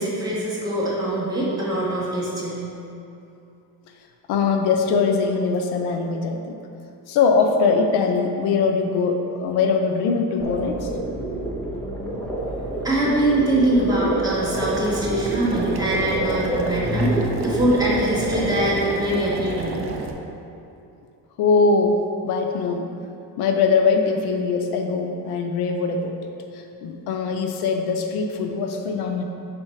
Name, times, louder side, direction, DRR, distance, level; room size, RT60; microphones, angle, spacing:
voice 1, 0.0-2.7 12.6-19.8, right 1 dB, 10° right, -9 dB, 1.5 m, -23 dB
voice 2, 4.3-6.6 7.1-10.9 21.4-22.9 23.4-26.1 26.5-29.2, left 4 dB, 75° left, 4 dB, 0.6 m, -22 dB
sound 1, 10.4-18.7, right 1 dB, 5° left, 0.7 m, -27 dB
Boiling, 14.4-20.1, right 3 dB, 35° right, 0.5 m, -32 dB
6.0 x 4.8 x 4.4 m, 2.7 s
cardioid pair, 160°, 39 cm